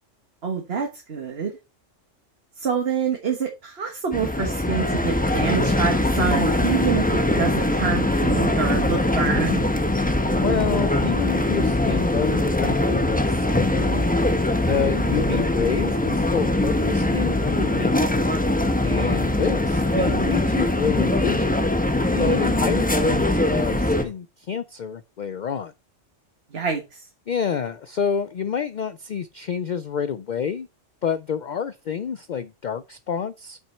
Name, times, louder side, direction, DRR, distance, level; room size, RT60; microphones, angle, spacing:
voice 1, 0.4-1.5 2.6-9.6 26.5-27.0, right 6 dB, 55° right, 1.5 m, -26 dB
sound 1, 4.1-24.0, left 1 dB, 10° left, 0.9 m, -22 dB
voice 2, 10.3-14.0 14.7-18.0 18.8-21.6 22.1-25.7 27.3-30.7 31.0-33.6, left 7 dB, 60° left, 0.5 m, -28 dB
8.2 x 6.1 x 4.3 m
omnidirectional pair, 1.3 m